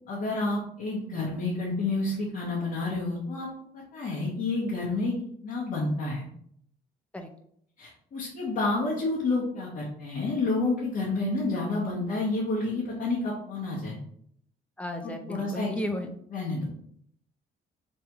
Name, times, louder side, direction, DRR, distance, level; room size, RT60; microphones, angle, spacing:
voice 1, 0.1-3.5 3.7-5.2 5.4-6.2 7.8-14.0 15.0-15.7 16.3-16.6, left 2 dB, 50° left, -5 dB, 1.3 m, -29 dB
voice 2, 14.8-16.1, left 1 dB, 5° left, 5 dB, 0.6 m, -34 dB
3.4 x 3.0 x 3.4 m, 0.67 s
cardioid pair, 110°, 17 cm